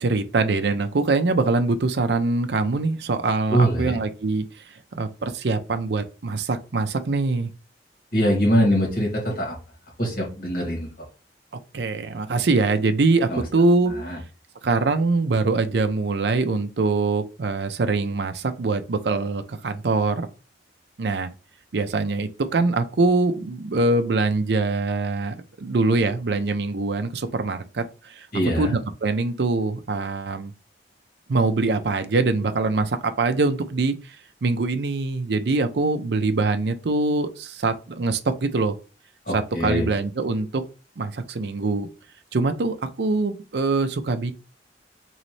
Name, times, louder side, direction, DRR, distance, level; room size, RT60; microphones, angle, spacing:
voice 1, 0.0-4.5 5.0-7.5 11.7-13.9 14.6-20.3 21.0-21.3 21.7-28.3 28.6-30.5 31.3-33.9 34.4-38.8 39.3-40.6 41.0-41.9 42.3-44.3, right 3 dB, 65° right, 0.5 m, -23 dB
voice 2, 3.5-4.0 8.1-9.6 10.0-10.9 13.3-13.4 13.9-14.2 28.3-28.8 39.3-39.9, equal, 50° left, 2.2 m, -23 dB
4.0 x 3.1 x 3.1 m
head